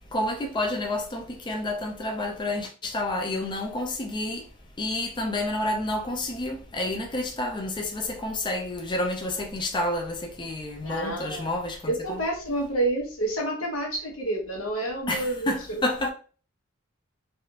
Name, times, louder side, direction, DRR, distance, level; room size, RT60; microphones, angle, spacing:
voice 1, 0.1-4.5 4.8-12.2 15.1-16.1, left 1 dB, 25° left, 0.4 m, -29 dB
voice 2, 10.8-11.5 11.9-15.8, right 1 dB, 80° left, 1.1 m, -29 dB
3.4 x 2.4 x 2.8 m
head